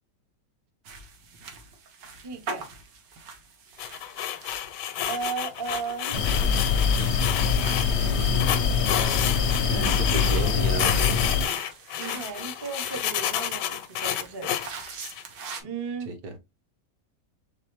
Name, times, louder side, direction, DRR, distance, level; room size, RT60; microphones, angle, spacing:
sound 1, 0.8-15.6, right 4 dB, 85° right, 1.7 m, -43 dB
voice 1, 2.2-2.7 5.0-6.2 11.9-14.5 15.6-16.1, right 5 dB, 40° right, 0.3 m, -35 dB
sound 2, 3.8-7.9 8.4-10.5 10.8-15.2, left 11 dB, 85° left, 1.2 m, -30 dB
sound 3, 6.1-11.5, left 6 dB, 65° left, 0.6 m, -24 dB
voice 2, 8.0-8.6 9.6-11.2 16.1-16.3, right 3 dB, 65° right, 1.4 m, -34 dB
4.6 x 3.5 x 3.0 m
omnidirectional pair, 1.8 m